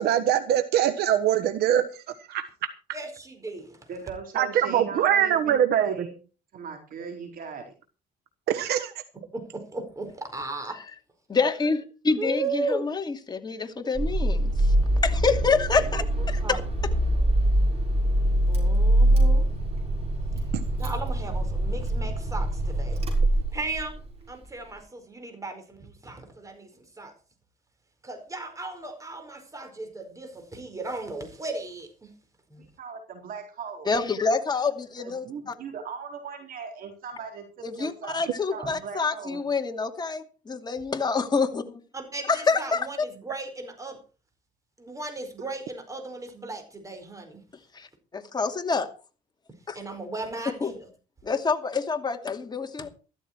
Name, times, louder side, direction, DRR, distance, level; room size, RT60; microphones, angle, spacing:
voice 1, 0.0-2.0 2.3-2.7 4.3-5.9 8.5-8.9 20.5-20.6, right 10 dB, 70° right, 1.3 m, -23 dB
voice 2, 2.9-3.9 9.3-10.8 12.2-12.8 15.9-16.0 16.4-16.6 18.5-19.5 20.4-20.5 20.8-23.0 23.5-24.0 24.3-27.1 28.0-32.1 32.5-32.6 38.6-38.7 41.9-44.0 44.8-47.4 49.7-50.8, right 3 dB, 20° right, 4.9 m, -36 dB
voice 3, 3.9-6.1 6.5-7.7 32.6-33.9 35.0-37.4 37.8-38.2 38.5-39.4, right 6 dB, 55° right, 4.0 m, -38 dB
voice 4, 11.3-14.7 15.0-16.6 33.9-35.5 37.6-41.8 42.3-42.9 47.7-47.9 48.1-48.9 49.7-49.8 50.6-50.7 51.2-52.9, left 4 dB, 25° left, 2.5 m, -27 dB
Car / Engine starting, 13.9-24.0, right 1 dB, 35° right, 6.3 m, -24 dB
14.0 x 13.0 x 4.6 m
cardioid pair, 110°, 17 cm